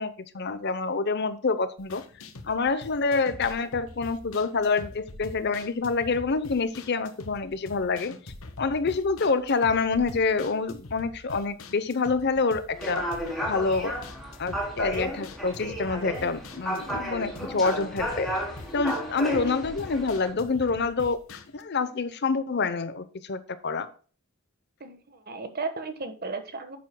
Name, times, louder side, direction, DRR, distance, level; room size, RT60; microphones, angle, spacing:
voice 1, 0.0-2.0 2.4-8.1 8.6-13.1 13.5-14.0 14.4-18.3 18.7-23.9, left 4 dB, 50° left, 13 dB, 0.7 m, -27 dB
sound 1, 1.8-21.6, left 2 dB, 75° left, 1.0 m, -45 dB
sound 2, 12.7-20.3, equal, ahead, 2.9 m, -33 dB
voice 2, 24.8-26.8, right 4 dB, 45° right, 8 dB, 1.3 m, -35 dB
10.5 x 7.3 x 2.2 m, 0.39 s
head